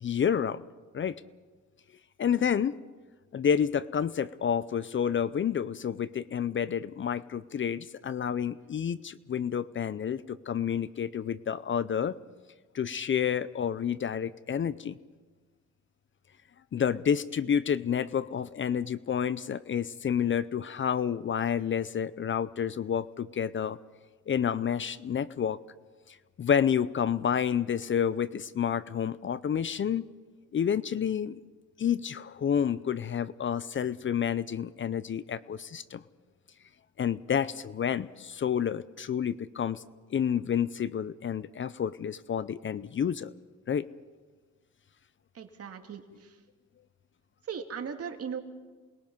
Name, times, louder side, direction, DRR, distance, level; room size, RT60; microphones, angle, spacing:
voice 1, 0.0-0.6 0.9-1.2 2.2-2.8 3.3-12.1 12.7-15.0 16.7-23.8 24.3-25.6 26.1-30.1 30.5-31.4 31.8-36.0 37.0-39.8 40.1-43.3 43.7-43.9, left 8 dB, 40° left, 17 dB, 0.7 m, -29 dB
voice 2, 45.3-46.0 47.5-48.4, right 7 dB, 50° right, 5 dB, 2.4 m, -37 dB
28.0 x 21.0 x 5.4 m, 1.3 s
cardioid pair, 90°, 30 cm